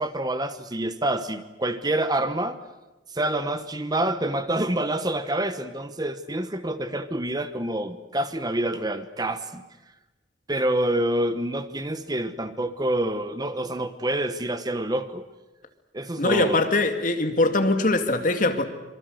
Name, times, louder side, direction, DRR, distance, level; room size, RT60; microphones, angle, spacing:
voice 1, 0.0-2.6 3.1-9.6 10.5-15.2 15.9-16.7, right 1 dB, 20° right, 1.1 m, -27 dB
voice 2, 16.2-18.6, left 2 dB, 45° left, 2.3 m, -22 dB
26.0 x 24.0 x 8.0 m
head